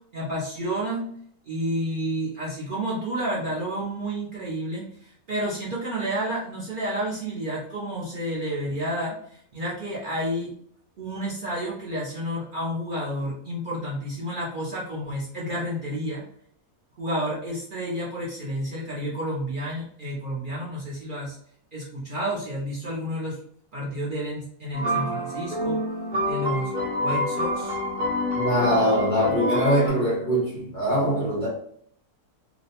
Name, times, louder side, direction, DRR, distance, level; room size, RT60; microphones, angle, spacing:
voice 1, 0.1-1.1 1.5-10.5 11.0-16.2 17.0-21.4 21.7-23.4 23.7-25.8 26.2-26.7 27.0-27.8, equal, 75° right, 0.4 m, -30 dB
sound 1, 24.7-29.9, left 1 dB, 40° right, 0.8 m, -27 dB
voice 2, 28.4-31.5, equal, 40° left, 0.8 m, -22 dB
2.6 x 2.0 x 2.7 m
omnidirectional pair, 1.6 m